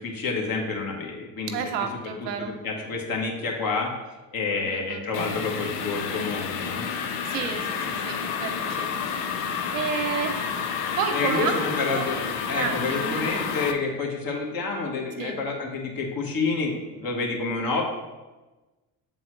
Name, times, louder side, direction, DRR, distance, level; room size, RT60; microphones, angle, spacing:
voice 1, 0.0-1.6 2.2-3.9 4.3-6.9 11.1-17.8, left 4 dB, 45° left, 0 dB, 1.6 m, -29 dB
voice 2, 1.5-2.5 4.5-5.0 7.2-9.4 9.7-10.6 11.0-11.7 11.9-12.1 12.5-13.4 15.2-15.4, right 6 dB, 85° right, 5 dB, 0.9 m, -31 dB
sound 1, 5.1-13.7, left 6 dB, 80° left, 0.8 m, -30 dB
7.7 x 3.9 x 3.2 m, 1.2 s
hypercardioid pair, 70°, 48 cm